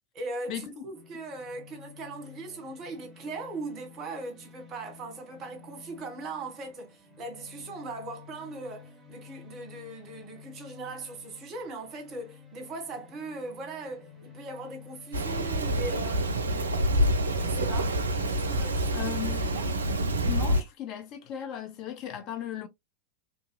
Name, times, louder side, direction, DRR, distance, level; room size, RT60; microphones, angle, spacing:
voice 1, 0.1-16.9 17.3-18.0 18.3-19.7, right 2 dB, 30° right, 1.1 m, -40 dB
sound 1, 0.9-17.8, left 6 dB, ahead, 1.8 m, -51 dB
Rain, 15.1-20.6, right 1 dB, 70° right, 0.4 m, -27 dB
voice 2, 18.7-19.5 20.3-22.7, left 10 dB, 35° left, 0.5 m, -37 dB
2.9 x 2.7 x 2.2 m
figure-of-eight pair, 90°, 0 cm